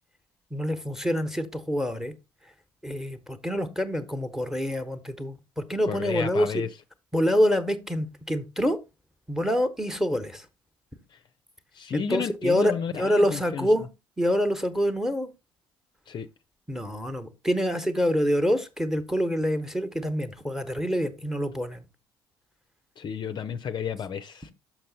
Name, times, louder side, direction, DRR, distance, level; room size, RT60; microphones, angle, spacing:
voice 1, 0.5-2.1 2.8-6.6 7.1-8.8 9.3-10.5 11.9-13.9 14.2-15.3 16.7-21.8, equal, 5° right, 1.1 m, -26 dB
voice 2, 5.8-6.7 11.7-13.7 16.1-16.3 23.0-24.5, left 7 dB, 40° left, 0.5 m, -32 dB
6.4 x 5.9 x 4.0 m
figure-of-eight pair, 50°, 12 cm